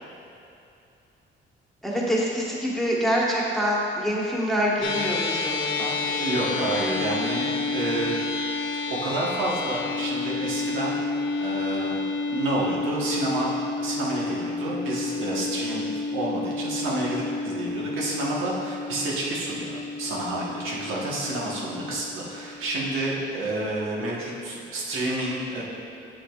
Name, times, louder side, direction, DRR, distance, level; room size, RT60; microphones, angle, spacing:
voice 1, 1.8-6.0, equal, ahead, -5 dB, 1.3 m, -25 dB
sound 1, 4.8-23.4, left 3 dB, 75° left, 0.7 m, -30 dB
voice 2, 6.0-8.1 9.0-11.0 11.4-12.0 12.3-25.6, right 1 dB, 85° right, -5 dB, 1.2 m, -29 dB
7.5 x 6.7 x 2.4 m, 2.7 s
cardioid pair, 90°, 20 cm